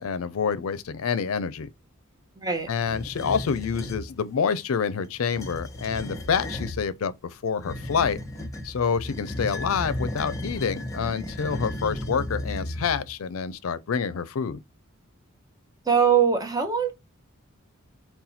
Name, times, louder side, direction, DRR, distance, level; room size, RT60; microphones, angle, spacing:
voice 1, 0.0-1.7 2.7-8.2 8.6-14.6, left 6 dB, 85° left, 0.4 m, -27 dB
voice 2, 2.4-2.7 15.9-16.9, right 7 dB, 20° right, 0.7 m, -22 dB
sound 1, 2.8-4.1 5.2-6.8 7.6-13.1, left 1 dB, 15° left, 0.9 m, -34 dB
4.1 x 2.2 x 4.1 m
head